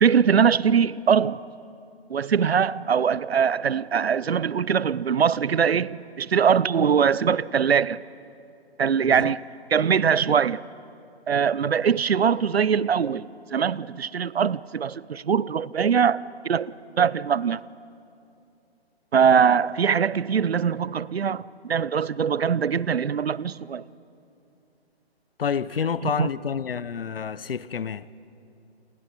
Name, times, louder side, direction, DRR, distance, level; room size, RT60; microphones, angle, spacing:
voice 1, 0.0-1.4 2.1-8.0 8.8-9.4 9.7-10.6 11.3-13.3 13.5-16.7 17.0-17.6 19.1-23.8 26.2-26.3, right 7 dB, 70° right, 0.7 m, -22 dB
voice 2, 9.0-9.3 25.4-28.1, left 7 dB, 60° left, 0.9 m, -29 dB
29.0 x 28.0 x 5.4 m
figure-of-eight pair, 145°, 32 cm